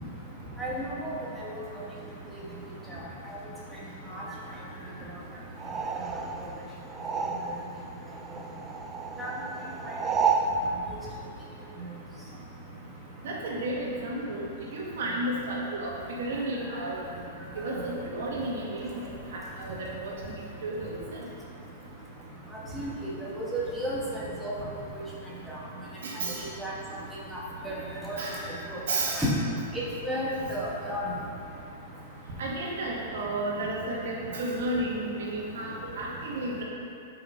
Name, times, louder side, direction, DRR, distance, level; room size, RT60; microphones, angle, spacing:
voice 1, 0.6-1.1 4.1-4.2 9.2-9.3 9.8-9.9 22.7-22.9 23.3-24.5 26.6-26.7 27.3-27.4 27.6-27.7 28.0-28.2 28.7-28.8 29.2-29.3 30.0-31.1, equal, 5° right, -8 dB, 1.4 m, -32 dB
sound 1, 5.6-7.8 8.1-10.6, right 5 dB, 20° right, 0.5 m, -31 dB
voice 2, 13.2-14.5 14.7-15.9 16.2-17.0 17.5-18.9 19.3-20.1 20.6-21.2 26.0-26.4 28.2-28.3 28.9-29.2 32.4-36.6, right 2 dB, 75° right, -4 dB, 1.7 m, -32 dB
5.6 x 5.4 x 5.5 m, 2.5 s
hypercardioid pair, 135°, 0 cm